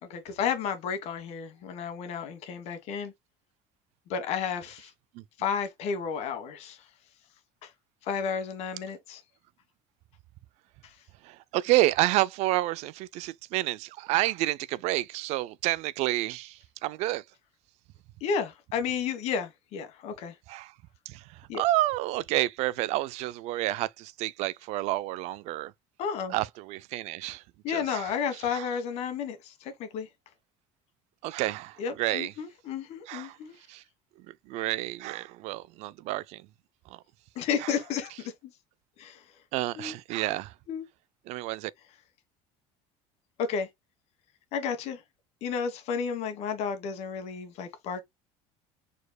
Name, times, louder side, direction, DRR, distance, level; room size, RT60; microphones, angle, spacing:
voice 1, 0.0-3.1 4.1-4.9 5.4-6.9 7.6-7.7 8.0-9.2 10.8-10.9 18.2-20.3 21.5-21.6 26.0-26.3 27.6-30.1 31.8-33.5 37.3-38.5 39.0-39.2 39.8-40.0 40.7-40.9 43.4-43.7 44.5-45.0 45.4-48.0, left 6 dB, 60° left, 1.4 m, -32 dB
voice 2, 11.2-17.2 20.5-20.7 21.1-25.7 26.3-28.1 28.5-28.7 31.2-32.3 33.1-33.4 33.7-33.8 34.3-36.5 36.9-37.0 37.6-37.7 39.5-40.5 41.3-41.7, right 17 dB, 60° right, 0.4 m, -29 dB
4.8 x 4.2 x 2.2 m
cardioid pair, 130°, 13 cm